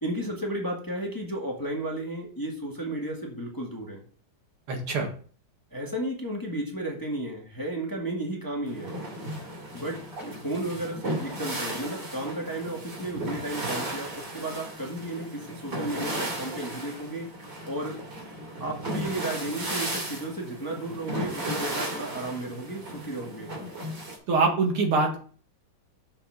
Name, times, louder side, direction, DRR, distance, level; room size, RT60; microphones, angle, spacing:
voice 1, 0.0-4.0 5.7-8.9 9.7-17.3 17.6-18.0 18.6-23.5, right 1 dB, 10° left, -1 dB, 1.4 m, -33 dB
voice 2, 4.7-5.1 24.3-25.2, right 3 dB, 80° right, 2 dB, 2.7 m, -24 dB
sound 1, 8.7-24.2, right 1 dB, 55° right, 3.5 m, -35 dB
6.9 x 5.6 x 5.8 m, 0.42 s
omnidirectional pair, 2.3 m